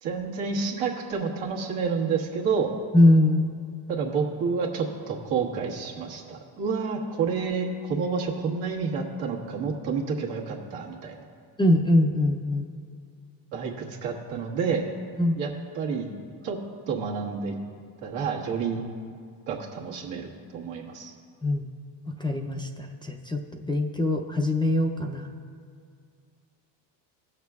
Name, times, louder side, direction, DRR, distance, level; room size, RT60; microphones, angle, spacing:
voice 1, 0.0-2.7 3.9-11.2 13.5-14.9 15.4-16.1 16.4-16.6 16.9-17.6 18.0-18.8 19.5-21.1, right 5 dB, 75° right, -1 dB, 1.5 m, -29 dB
voice 2, 2.9-3.5 11.6-12.7 15.2-15.4 21.4-21.7 22.2-25.3, left 1 dB, 10° left, 0 dB, 0.4 m, -22 dB
16.5 x 6.5 x 2.3 m, 2.2 s
supercardioid pair, 85°, 49 cm